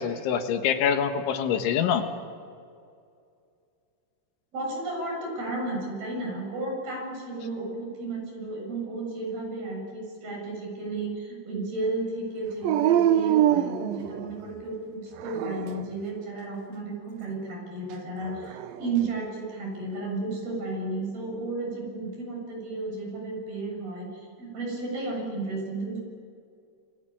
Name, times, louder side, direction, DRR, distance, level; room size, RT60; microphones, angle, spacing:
voice 1, 0.0-2.1, left 8 dB, 80° left, 6 dB, 3.8 m, -25 dB
voice 2, 4.5-26.0, right 2 dB, 50° right, 0 dB, 9.2 m, -33 dB
Dog, 12.6-14.5 15.2-16.0 18.2-19.1, right 11 dB, 85° right, 2.0 m, -25 dB
29.5 x 20.5 x 8.8 m, 2.3 s
omnidirectional pair, 5.5 m